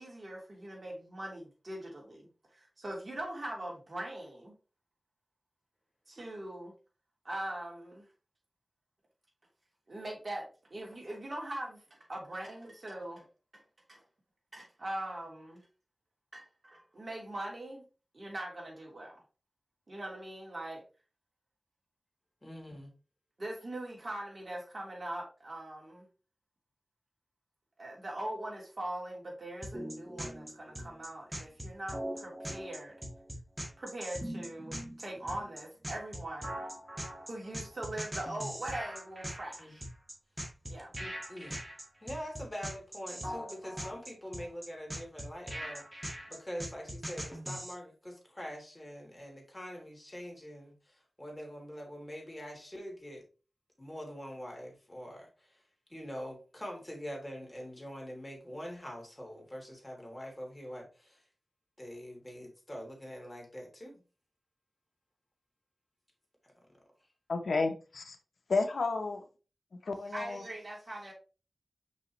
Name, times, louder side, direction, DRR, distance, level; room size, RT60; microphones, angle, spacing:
voice 1, 0.0-4.5 6.1-6.7 7.2-8.1 9.9-13.2 13.5-13.6 13.9-14.0 14.5-15.6 16.3-17.8 18.1-19.1 19.9-20.8 23.4-26.1 27.8-33.0 33.8-36.5 37.2-39.9 40.7-40.9 70.1-71.1, right 1 dB, 50° right, -2 dB, 3.3 m, -41 dB
voice 2, 22.4-22.9 39.6-39.7 41.0-41.6 42.0-45.8 46.3-53.2 53.8-55.6 55.9-61.3 61.8-64.0, equal, 15° left, 0 dB, 3.0 m, -44 dB
sound 1, 29.6-47.7, equal, 20° right, 1.9 m, -41 dB
voice 3, 67.3-68.2 68.5-69.2 69.9-70.4, left 3 dB, 85° left, 6 dB, 0.8 m, -31 dB
6.0 x 5.4 x 3.1 m, 0.34 s
wide cardioid pair, 70°, 0 cm